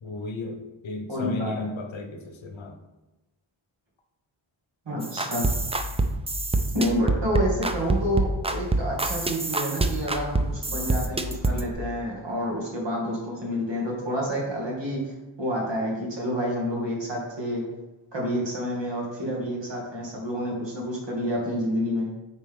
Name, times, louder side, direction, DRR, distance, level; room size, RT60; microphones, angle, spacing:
voice 1, 0.0-2.8, left 3 dB, 65° left, 6 dB, 0.9 m, -35 dB
voice 2, 1.1-1.7 4.9-5.5 6.7-17.6 18.1-22.1, equal, 55° right, -3 dB, 2.2 m, -29 dB
sound 1, 5.0-11.7, right 2 dB, 15° right, 0.3 m, -26 dB
8.9 x 4.1 x 3.6 m, 1.0 s
wide cardioid pair, 145°, 50 cm